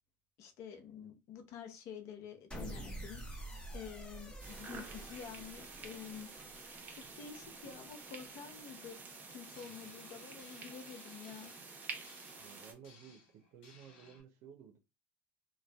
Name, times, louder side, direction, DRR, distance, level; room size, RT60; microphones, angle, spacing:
voice 1, 0.4-6.3 6.9-9.0 9.3-11.5, left 8 dB, 65° left, 0.6 m, -49 dB
sound 1, 2.5-8.8, right 1 dB, 15° left, 1.0 m, -49 dB
sound 2, 4.4-12.7, right 4 dB, 35° right, 0.8 m, -49 dB
sound 3, 9.5-14.2, left 4 dB, 85° left, 1.0 m, -62 dB
voice 2, 12.4-14.8, right 8 dB, 70° right, 0.6 m, -55 dB
2.5 x 2.2 x 2.2 m
supercardioid pair, 85°, 5 cm